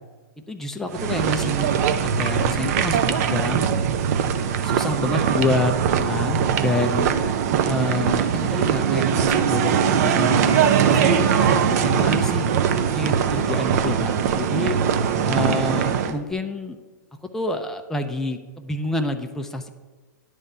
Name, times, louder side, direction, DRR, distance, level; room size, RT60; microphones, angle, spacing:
voice 1, 0.5-1.7 2.0-3.7 4.6-7.1 7.6-12.5 12.9-14.8 15.2-16.8 17.3-19.7, left 2 dB, 5° left, 5 dB, 0.5 m, -28 dB
sound 1, 0.9-16.1, right 8 dB, 50° right, 0.6 m, -21 dB
9.8 x 3.4 x 6.6 m, 1.3 s
hypercardioid pair, 115°, 10 cm